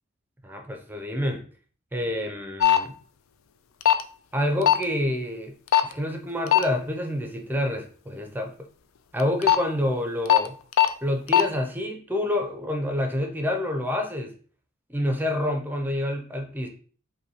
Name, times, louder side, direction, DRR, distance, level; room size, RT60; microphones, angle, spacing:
voice 1, 0.4-1.4 1.9-2.9 4.3-5.6 5.8-8.5 9.1-10.6 11.0-14.3 14.9-16.7, left 1 dB, 10° right, 4 dB, 0.5 m, -28 dB
sound 1, 2.6-2.8 3.8-4.0 4.7-4.8 5.7-5.9 6.5-6.6 9.2-9.6 10.3-10.4 10.7-10.9 11.3-11.4, left 10 dB, 70° left, 0.4 m, -17 dB
5.3 x 2.2 x 2.8 m, 0.44 s
head